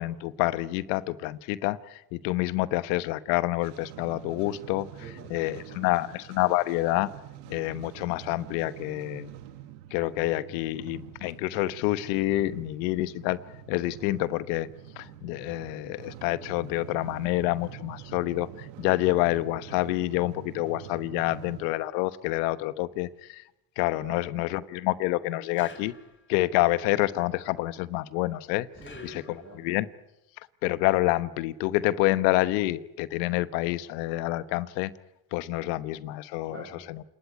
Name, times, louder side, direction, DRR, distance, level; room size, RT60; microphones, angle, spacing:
voice 1, 0.0-4.9 5.3-7.1 7.5-9.3 9.9-14.7 15.0-23.4 23.8-25.9 26.3-28.7 29.0-29.2 29.6-29.9 30.6-34.9 35.3-36.6 36.9-37.0, left 17 dB, 80° left, 15 dB, 1.2 m, -28 dB
sound 1, 3.6-21.7, right 11 dB, 85° right, 1.8 m, -46 dB
voice 2, 5.0-6.1 24.0-24.5 28.7-29.7 36.4-36.9, right 2 dB, 25° right, -3 dB, 7.9 m, -47 dB
sound 2, 25.5-26.5 28.8-29.8, left 3 dB, 25° left, 4.4 m, -50 dB
29.0 x 18.5 x 9.6 m, 0.90 s
supercardioid pair, 75°, 49 cm